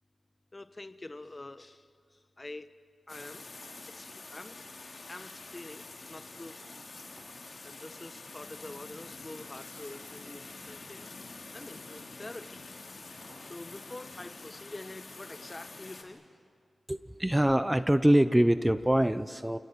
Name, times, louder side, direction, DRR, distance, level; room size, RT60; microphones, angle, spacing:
voice 1, 0.5-2.8 3.1-3.5 3.9-4.7 5.1-6.7 7.6-11.1 11.5-12.6 13.1-16.2, left 2 dB, 30° left, 12 dB, 1.0 m, -46 dB
sound 1, 3.1-16.0, left 3 dB, 55° left, 2.9 m, -47 dB
sound 2, 3.6-3.8 4.1-4.3 4.7-4.8 5.1-5.8 6.6-7.4 8.6-8.8 9.8-10.4 11.5-11.8 12.2-12.4 13.2-13.5 14.8-14.9 15.4-15.5, right 1 dB, 80° right, 6.2 m, -59 dB
voice 2, 16.9-19.6, right 1 dB, 10° right, 13 dB, 0.7 m, -24 dB
28.0 x 18.0 x 9.3 m, 2.3 s
cardioid pair, 60°, 0 cm